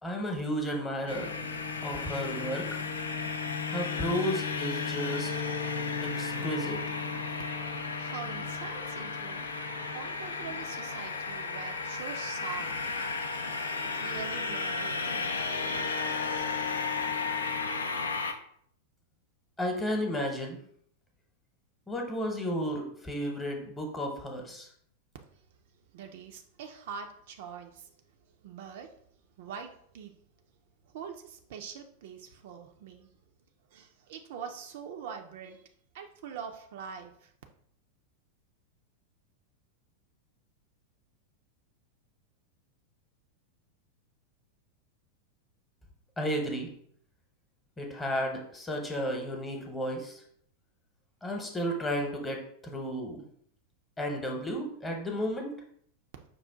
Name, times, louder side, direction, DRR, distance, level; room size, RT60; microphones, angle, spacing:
voice 1, 0.0-1.3 1.8-2.8 3.7-5.3 6.0-6.8 19.6-20.6 21.9-24.7 46.2-46.7 47.8-50.2 51.2-53.2 54.0-55.5, equal, 15° left, 1 dB, 1.0 m, -33 dB
sound 1, 1.1-18.3, left 4 dB, 70° left, 0.4 m, -33 dB
voice 2, 8.0-9.5 9.9-15.7 25.9-27.9 28.4-28.9 29.4-30.2 30.9-33.1 33.7-35.6 35.9-37.3, right 7 dB, 55° right, 4 dB, 0.4 m, -44 dB
5.3 x 2.4 x 3.6 m, 0.63 s
figure-of-eight pair, 90°, 0 cm